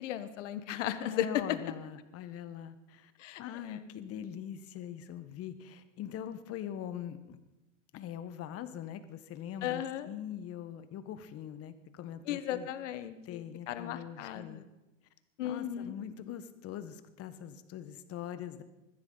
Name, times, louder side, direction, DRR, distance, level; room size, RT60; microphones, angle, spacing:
voice 1, 0.0-1.6 3.2-3.8 9.6-10.1 12.3-14.7 15.4-16.0, left 11 dB, 65° left, 11 dB, 1.4 m, -36 dB
voice 2, 1.1-3.1 3.4-7.4 7.9-12.7 13.2-14.6 15.4-18.6, left 9 dB, 35° left, 11 dB, 1.4 m, -42 dB
21.0 x 14.5 x 4.0 m, 1.0 s
hypercardioid pair, 100°, 38 cm